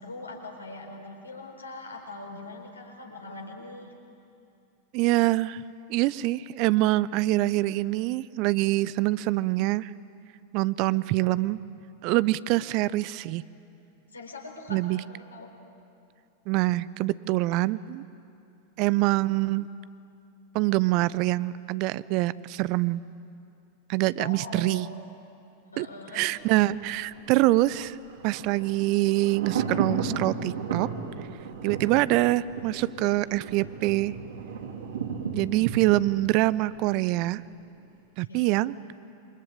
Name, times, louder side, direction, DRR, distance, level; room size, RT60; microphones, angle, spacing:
voice 1, 0.0-3.9 14.1-15.5 24.2-24.9 25.7-26.4 38.3-38.4, left 3 dB, 80° left, 1 dB, 4.4 m, -42 dB
voice 2, 4.9-5.6 5.9-9.9 10.5-11.6 12.0-13.4 14.7-15.0 16.5-18.0 18.8-19.7 20.5-23.0 23.9-24.9 25.8-25.9 26.1-28.0 28.2-30.9 31.6-34.1 35.3-37.4 38.2-38.8, right 18 dB, 45° right, 19 dB, 0.6 m, -25 dB
Thunder, 26.4-37.4 37.7-37.8, right 5 dB, 65° right, 3.5 m, -35 dB
27.0 x 24.5 x 8.9 m, 2.6 s
figure-of-eight pair, 90°, 0 cm